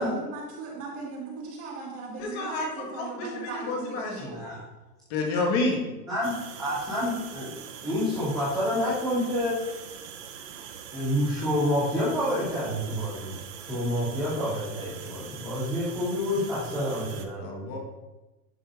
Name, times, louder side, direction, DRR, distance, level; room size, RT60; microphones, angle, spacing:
voice 1, 0.0-4.4, right 3 dB, 30° right, -3 dB, 1.8 m, -38 dB
voice 2, 2.2-4.3 5.1-5.8 17.4-17.8, left 3 dB, 40° left, 0 dB, 1.5 m, -29 dB
voice 3, 4.3-4.6 6.1-7.5 7.8-9.6 10.9-13.4 13.6-17.7, left 1 dB, 5° left, -18 dB, 0.3 m, -28 dB
sound 1, 6.2-17.3, right 8 dB, 50° right, 0.7 m, -43 dB
11.0 x 5.0 x 2.5 m, 1.1 s
supercardioid pair, 160°, 49 cm